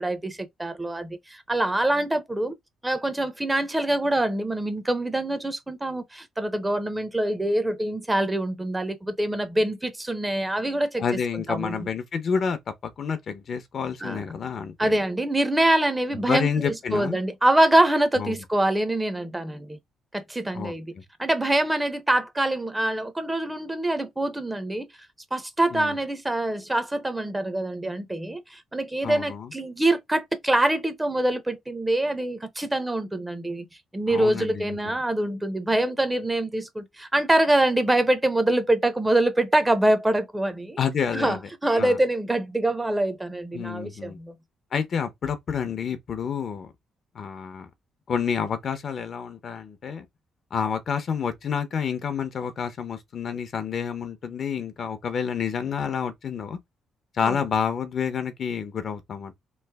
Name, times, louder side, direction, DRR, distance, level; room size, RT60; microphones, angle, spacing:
voice 1, 0.0-2.6 2.8-11.0 11.5-11.9 14.0-14.2 14.8-19.8 20.1-20.9 21.2-24.9 25.3-33.7 33.9-40.8 41.1-44.4 57.2-57.4, right 1 dB, 15° right, 0.6 m, -25 dB
voice 2, 11.0-14.9 16.1-17.2 18.2-18.4 20.5-20.7 25.7-26.0 29.0-29.5 34.1-35.0 40.8-41.4 41.7-42.0 43.5-44.2 44.7-46.7 47.1-47.7 48.1-50.1 50.5-56.6 57.2-59.3, left 7 dB, 55° left, 0.7 m, -29 dB
3.1 x 2.1 x 3.4 m
cardioid pair, 90°, 0 cm